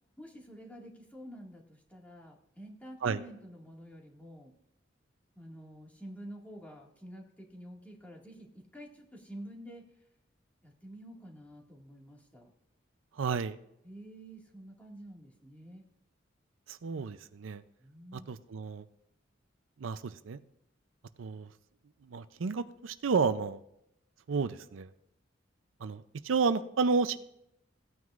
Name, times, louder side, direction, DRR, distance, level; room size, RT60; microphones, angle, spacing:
voice 1, 0.2-4.5 5.4-10.0 10.6-12.5 13.8-15.8 17.8-18.3, equal, 10° left, -1 dB, 1.9 m, -49 dB
voice 2, 13.2-13.6 16.7-17.6 18.1-18.8 19.8-20.4 21.2-21.5 22.1-23.6 24.3-24.9 25.8-27.2, right 5 dB, 80° right, 12 dB, 0.5 m, -31 dB
16.5 x 9.4 x 2.5 m, 0.79 s
head